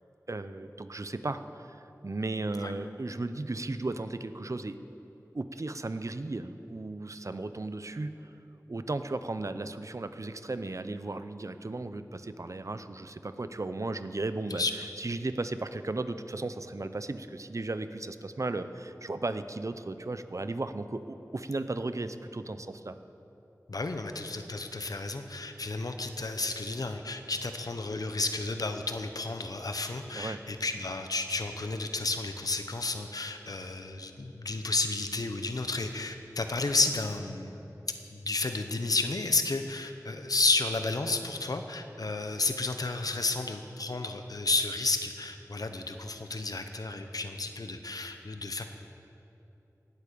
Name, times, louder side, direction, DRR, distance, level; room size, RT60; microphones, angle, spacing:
voice 1, 0.3-4.8 5.3-8.3 8.7-23.0 30.1-30.4, right 2 dB, 55° right, 11 dB, 0.7 m, -35 dB
voice 2, 23.7-37.6 38.1-48.6, left 3 dB, 75° left, 7 dB, 1.0 m, -32 dB
18.0 x 8.7 x 6.9 m, 2.9 s
wide cardioid pair, 45°, 6 cm